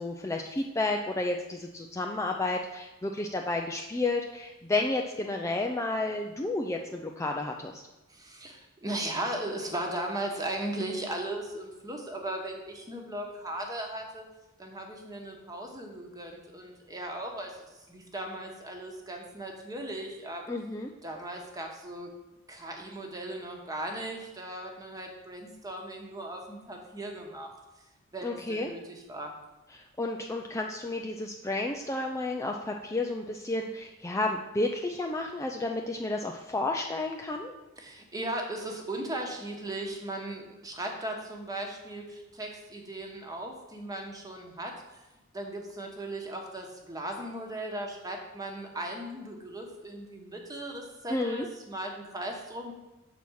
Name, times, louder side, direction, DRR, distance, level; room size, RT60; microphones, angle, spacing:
voice 1, 0.0-7.8 20.5-20.9 28.2-28.7 29.7-37.5 51.1-51.5, left 2 dB, 15° left, 2 dB, 0.4 m, -31 dB
voice 2, 8.1-14.2 14.6-20.4 21.0-22.1 22.5-27.5 28.1-29.3 37.8-45.0 45.3-52.7, right 1 dB, 20° right, 1 dB, 1.1 m, -37 dB
7.0 x 4.3 x 6.2 m, 1.0 s
head